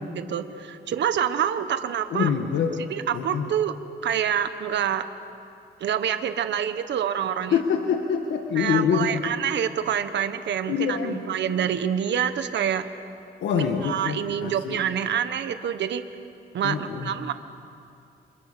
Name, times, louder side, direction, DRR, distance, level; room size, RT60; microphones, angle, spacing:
voice 1, 0.2-2.3 2.9-3.7 4.0-5.0 5.8-7.6 8.6-12.8 13.8-16.0 16.5-17.3, right 9 dB, 70° right, 9 dB, 1.4 m, -26 dB
voice 2, 2.1-2.8 3.1-3.5 7.5-9.2 10.7-11.2 13.4-14.8 16.6-17.2, left 7 dB, 90° left, 3 dB, 1.8 m, -25 dB
30.0 x 26.5 x 6.9 m, 2.6 s
cardioid pair, 120°, 19 cm